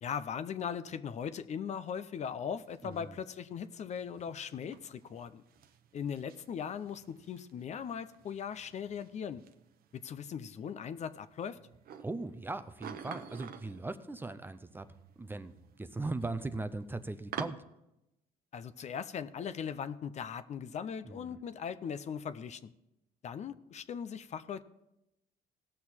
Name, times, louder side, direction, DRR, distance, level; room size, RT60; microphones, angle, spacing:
voice 1, 0.0-5.4 5.9-9.4 9.9-11.6 18.5-22.7 23.2-24.6, left 7 dB, 45° left, 13 dB, 0.5 m, -39 dB
sound 1, 2.6-17.5, right 8 dB, 60° right, 0.8 m, -51 dB
voice 2, 2.8-3.2 12.0-14.9 15.2-15.5 15.8-17.6 21.0-21.4, right 2 dB, 10° right, 10 dB, 0.5 m, -39 dB
17.5 x 6.4 x 4.3 m, 0.89 s
cardioid pair, 110°, 17 cm